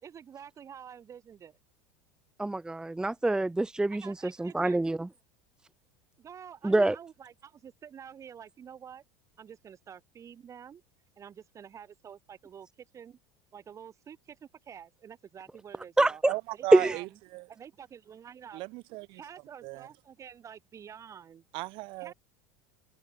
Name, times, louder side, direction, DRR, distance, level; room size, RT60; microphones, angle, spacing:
voice 1, 0.0-1.6 3.9-4.8 6.2-9.0 9.4-10.8 11.2-12.7 12.9-13.2 13.5-16.2 16.5-17.1 17.5-18.6 19.1-21.4 22.0-22.1, right 8 dB, 30° right, 4.5 m, -48 dB
voice 2, 2.4-5.1 6.6-7.0 16.0-16.3 16.7-17.0, right 2 dB, 10° right, 0.8 m, -25 dB
voice 3, 16.3-17.5 18.5-19.2 19.6-19.9 21.5-22.1, right 23 dB, 60° right, 4.5 m, -37 dB
hypercardioid pair, 95°, 10 cm